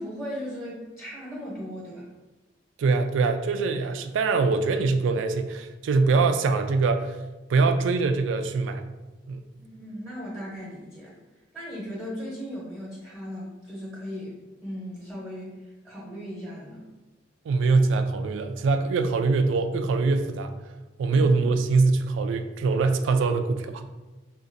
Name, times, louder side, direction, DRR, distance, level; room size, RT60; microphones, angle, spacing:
voice 1, 0.0-2.1 9.6-11.1 11.5-15.5 15.8-16.8, equal, ahead, -6 dB, 0.8 m, -37 dB
voice 2, 2.8-7.2 7.5-8.9 9.3-9.4 17.5-20.5 21.0-23.8, right 4 dB, 80° right, 7 dB, 0.3 m, -23 dB
3.9 x 2.5 x 2.5 m, 1.2 s
head